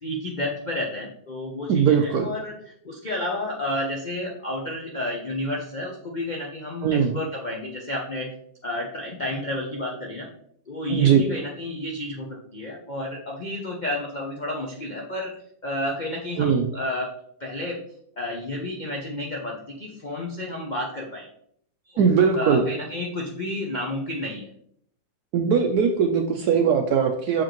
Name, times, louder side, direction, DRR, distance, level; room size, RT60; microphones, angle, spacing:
voice 1, 0.0-2.5 2.8-8.3 8.6-10.3 10.7-15.3 15.6-17.1 17.4-17.8 18.2-21.3 21.9-22.0 22.3-24.5, left 1 dB, 65° left, -2 dB, 0.4 m, -31 dB
voice 2, 1.7-2.3 6.8-7.2 10.9-11.2 16.4-16.7 22.0-22.7 25.3-27.4, right 7 dB, 75° right, 4 dB, 0.9 m, -20 dB
6.4 x 4.9 x 3.0 m, 0.67 s
omnidirectional pair, 2.1 m